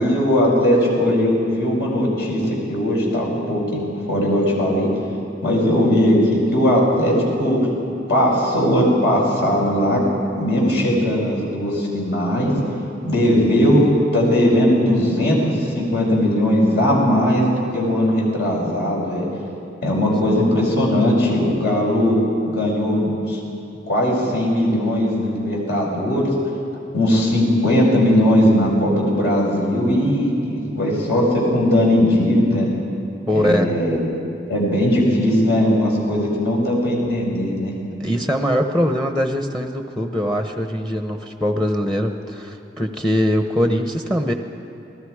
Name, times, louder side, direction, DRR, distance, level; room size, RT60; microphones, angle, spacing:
voice 1, 0.0-3.8 4.1-4.9 5.4-7.7 8.1-10.0 10.4-12.5 13.0-13.9 14.1-19.2 19.8-22.2 22.5-23.4 23.9-26.3 26.9-32.7 33.3-34.0 34.5-37.7, equal, 65° left, -2 dB, 6.0 m, -18 dB
voice 2, 33.3-33.7 38.0-44.3, equal, 5° left, 5 dB, 0.9 m, -22 dB
28.0 x 19.0 x 4.9 m, 2.8 s
head